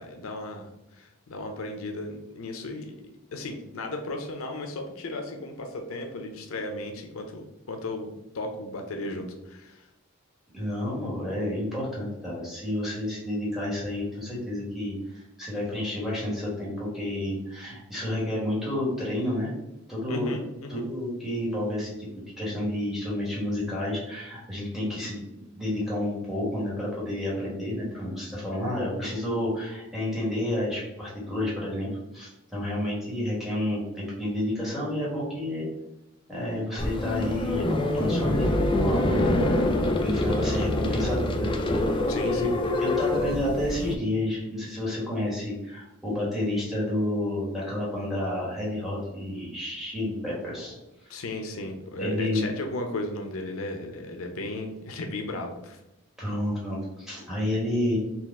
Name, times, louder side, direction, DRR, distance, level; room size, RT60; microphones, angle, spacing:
voice 1, 0.0-2.9 3.3-9.9 20.1-20.9 42.1-42.5 51.1-55.8, left 2 dB, 80° left, 3 dB, 0.6 m, -35 dB
voice 2, 10.5-19.5 19.9-20.3 20.7-21.9 22.4-25.2 25.5-35.7 36.3-39.4 40.0-41.5 42.2-50.7 52.0-52.5 56.2-58.0, left 1 dB, ahead, -6 dB, 1.4 m, -30 dB
sound 1, 36.8-43.9, left 1 dB, 25° left, 0.3 m, -25 dB
4.1 x 2.4 x 3.6 m, 0.94 s
head